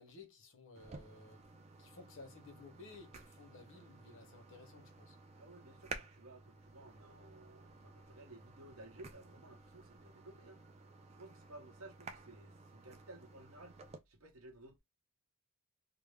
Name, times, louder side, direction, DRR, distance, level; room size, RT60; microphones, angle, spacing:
voice 1, 0.0-1.4 1.8-5.2, left 3 dB, 60° left, 0.7 m, -56 dB
sound 1, 0.7-14.0, right 4 dB, 30° right, 0.3 m, -54 dB
voice 2, 5.3-10.6 11.2-14.8, right 2 dB, 75° right, 0.8 m, -56 dB
2.4 x 2.0 x 3.1 m
head